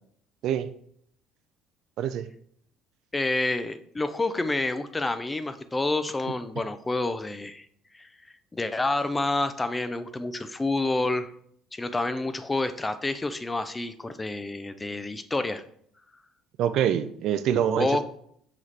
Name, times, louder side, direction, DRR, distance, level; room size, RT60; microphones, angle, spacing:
voice 1, 3.1-7.7 7.9-8.1 8.5-11.3 11.7-15.6 17.8-18.0, left 2 dB, 15° left, 11 dB, 0.4 m, -28 dB
voice 2, 16.6-18.0, right 9 dB, 65° right, 10 dB, 0.3 m, -25 dB
5.7 x 2.4 x 3.2 m, 0.65 s
supercardioid pair, 85°, 0 cm